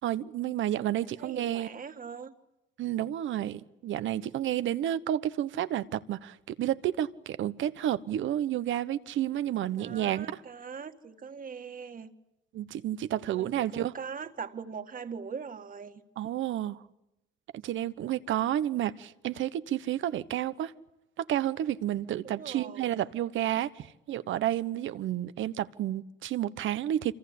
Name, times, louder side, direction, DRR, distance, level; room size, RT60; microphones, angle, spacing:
voice 1, 0.0-1.7 2.8-10.4 12.5-13.9 16.2-16.8 17.6-20.7 21.2-27.1, right 12 dB, 75° right, 1.1 m, -31 dB
voice 2, 1.0-2.3 9.8-12.1 13.3-16.0 22.2-23.1, right 6 dB, 45° right, 2.1 m, -41 dB
27.0 x 25.0 x 8.6 m
cardioid pair, 90°, 20 cm